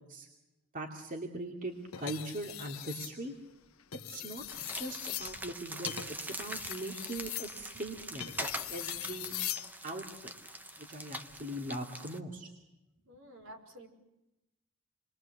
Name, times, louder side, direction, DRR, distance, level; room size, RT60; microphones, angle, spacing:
voice 1, 0.7-3.3 4.1-4.4 4.7-6.0 6.2-9.4 9.8-10.3 10.8-12.5, right 1 dB, 40° right, 2 dB, 2.6 m, -41 dB
sound 1, 1.9-3.2 3.8-9.7 11.1-11.4, left 12 dB, 80° left, 1.3 m, -41 dB
sound 2, 4.5-12.2, right 1 dB, 10° right, 0.9 m, -43 dB
voice 2, 13.1-13.9, right 1 dB, 70° right, 4 dB, 5.4 m, -51 dB
28.5 x 22.5 x 7.9 m, 0.95 s
head